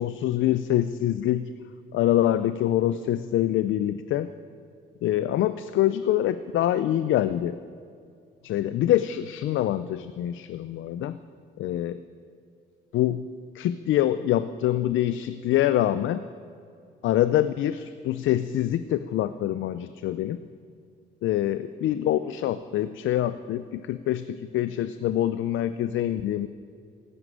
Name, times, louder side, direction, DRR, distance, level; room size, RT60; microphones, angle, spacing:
voice 1, 0.0-1.5 1.9-4.3 5.0-7.6 8.4-11.2 11.6-12.0 12.9-13.3 13.5-16.2 17.0-20.4 21.2-26.5, left 12 dB, 80° left, 13 dB, 0.5 m, -25 dB
15.5 x 9.6 x 9.2 m, 2.3 s
cardioid pair, 90°, 20 cm